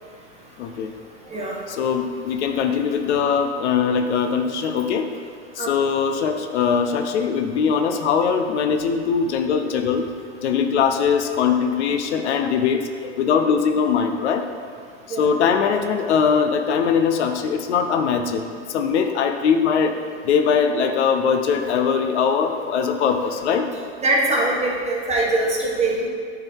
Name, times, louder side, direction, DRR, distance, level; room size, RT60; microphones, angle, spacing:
voice 1, 0.6-0.9 1.8-5.1 5.6-10.0 10.4-14.4 15.2-18.4 18.7-19.9 20.2-23.7, left 6 dB, 75° left, 6 dB, 0.7 m, -21 dB
voice 2, 1.3-1.6 5.6-5.9 15.1-15.2 24.0-26.1, right 2 dB, 20° right, -3 dB, 1.4 m, -22 dB
8.7 x 3.9 x 4.5 m, 2.1 s
hypercardioid pair, 110°, 34 cm